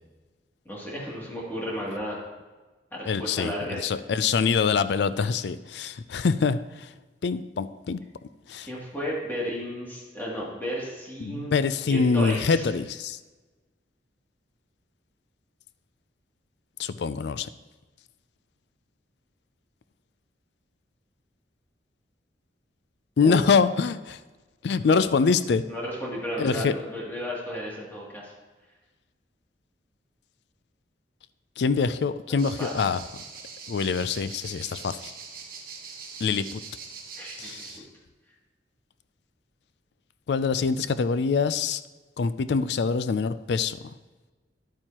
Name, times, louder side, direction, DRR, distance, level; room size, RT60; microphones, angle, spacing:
voice 1, 0.6-2.2 2.9-3.8 8.6-11.6 11.9-12.7 23.2-23.3 24.9-25.0 25.7-28.3 32.3-32.7 37.2-37.5, equal, 10° left, -5 dB, 2.6 m, -33 dB
voice 2, 3.1-6.9 7.2-8.0 8.5-8.7 11.2-13.2 16.8-17.5 23.2-24.2 24.6-25.6 26.4-26.7 31.6-33.0 33.7-35.1 36.2-36.6 37.4-37.7 40.3-41.8 42.2-43.9, left 5 dB, 70° left, 14 dB, 0.4 m, -25 dB
sound 1, 32.4-37.8, right 5 dB, 55° right, 1.1 m, -42 dB
11.5 x 8.9 x 2.9 m, 1.2 s
head